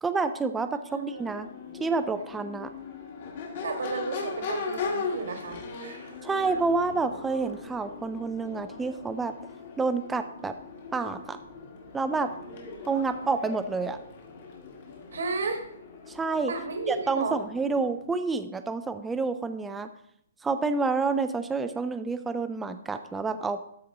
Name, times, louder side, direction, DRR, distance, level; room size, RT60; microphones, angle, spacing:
voice 1, 0.0-1.5 1.8-2.7 6.2-9.3 9.8-10.5 10.9-11.4 11.9-12.3 12.9-14.0 16.1-16.5 16.9-19.9 20.4-23.6, right 4 dB, 5° right, 9 dB, 0.3 m, -28 dB
Crowd / Race car auto racing / Accelerating revving vroom, 0.9-18.0, left 4 dB, 40° left, 1.8 m, -39 dB
voice 2, 0.9-1.2 3.6-6.1 15.1-15.6 16.5-17.4, right 3 dB, 70° right, 4 dB, 1.6 m, -33 dB
12.5 x 4.3 x 3.8 m, 0.71 s
hypercardioid pair, 175°, 0 cm